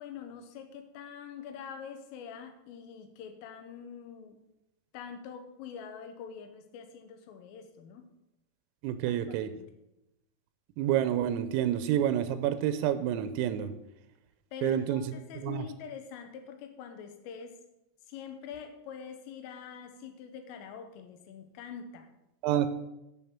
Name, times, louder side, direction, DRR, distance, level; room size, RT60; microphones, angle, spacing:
voice 1, 0.0-4.4 4.9-8.1 9.1-9.6 14.5-17.6 18.1-22.1, left 7 dB, 80° left, 7 dB, 3.5 m, -44 dB
voice 2, 8.8-9.5 10.8-13.7 14.6-15.0 15.4-15.6 22.4-22.7, right 11 dB, 90° right, 11 dB, 3.4 m, -28 dB
10.5 x 6.9 x 5.9 m, 0.89 s
omnidirectional pair, 5.9 m